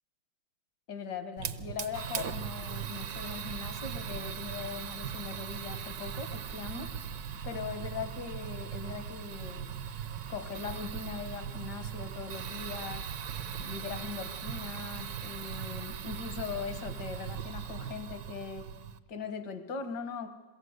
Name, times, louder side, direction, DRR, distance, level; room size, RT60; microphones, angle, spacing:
voice 1, 0.9-6.9 7.4-10.0 10.3-13.1 13.6-18.7 19.1-20.3, left 6 dB, 70° left, 9 dB, 1.9 m, -40 dB
Fire, 1.4-19.0, right 8 dB, 65° right, 1.3 m, -39 dB
22.5 x 16.5 x 8.0 m, 1.2 s
omnidirectional pair, 1.9 m